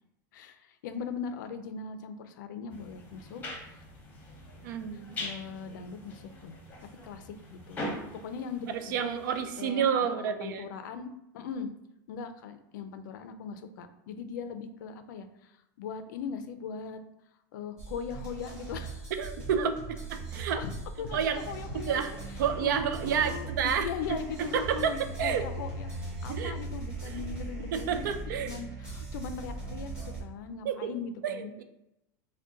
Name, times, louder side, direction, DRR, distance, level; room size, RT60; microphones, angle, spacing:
voice 1, 0.3-3.8 4.9-6.6 7.0-7.9 8.2-9.1 9.6-11.1 11.3-11.7 12.1-17.0 17.5-19.1 20.5-20.7 21.0-22.2 22.6-23.5 23.8-28.0 28.4-31.5, left 6 dB, 80° left, 9 dB, 0.4 m, -40 dB
sound 1, 2.7-9.7, left 1 dB, 15° left, 0.8 m, -43 dB
voice 2, 4.6-5.2 8.7-10.7 19.2-20.6 21.1-21.4 21.9-22.1 22.4-23.9 24.4-25.5 26.3-26.6 27.2-27.3 27.7-28.6 30.6-30.9 31.2-31.6, right 7 dB, 85° right, 8 dB, 0.4 m, -30 dB
sound 2, 17.8-30.2, right 3 dB, 10° right, 1.3 m, -39 dB
3.7 x 2.2 x 3.6 m, 0.86 s
supercardioid pair, 155°, 10 cm